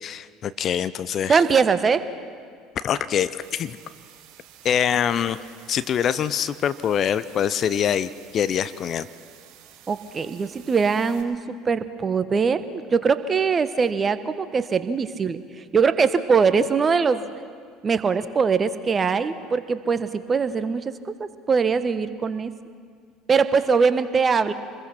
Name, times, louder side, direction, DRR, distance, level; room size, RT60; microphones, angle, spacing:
voice 1, 0.0-1.4 2.8-3.8 4.6-5.4 5.7-9.1, left 9 dB, 45° left, 14 dB, 0.8 m, -24 dB
voice 2, 1.3-2.0 9.9-15.4 15.7-17.3 17.8-22.5 23.3-24.5, right 5 dB, 30° right, 12 dB, 1.3 m, -22 dB
sound 1, 3.4-11.2, right 11 dB, 60° right, 4.2 m, -50 dB
27.5 x 21.0 x 5.9 m, 2.1 s
figure-of-eight pair, 65°, 0 cm